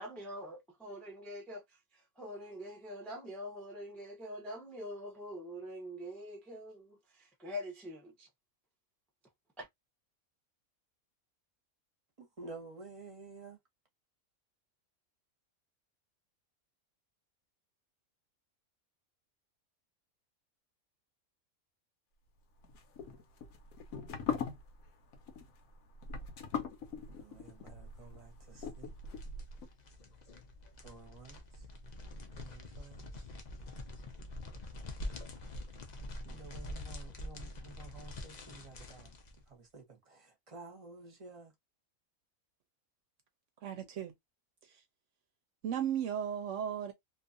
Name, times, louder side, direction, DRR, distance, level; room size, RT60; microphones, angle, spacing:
voice 1, 0.0-8.3 9.6-9.7, left 1 dB, ahead, 0.4 m, -45 dB
voice 2, 12.2-13.6 27.1-28.9 30.8-31.7 32.4-33.3 36.2-39.2 39.5-41.5, right 3 dB, 30° right, 0.8 m, -52 dB
sound 1, 22.6-29.7, left 6 dB, 80° left, 1.1 m, -41 dB
sound 2, 28.8-39.4, left 1 dB, 55° left, 0.5 m, -45 dB
voice 3, 43.6-44.2 44.6-44.8 45.6-46.9, right 9 dB, 70° right, 0.8 m, -35 dB
2.7 x 2.4 x 2.4 m
omnidirectional pair, 1.5 m